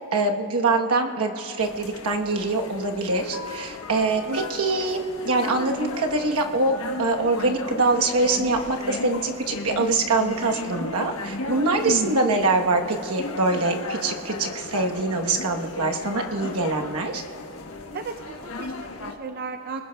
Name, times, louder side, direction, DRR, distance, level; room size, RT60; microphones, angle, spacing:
voice 1, 0.0-5.0 5.2-17.2, right 3 dB, 70° right, 2 dB, 1.1 m, -24 dB
sound 1, 1.6-19.1, left 2 dB, 65° left, 1.2 m, -35 dB
voice 2, 11.8-12.2 17.9-19.8, right 3 dB, 45° right, 6 dB, 0.5 m, -32 dB
29.5 x 20.0 x 2.3 m, 2.7 s
head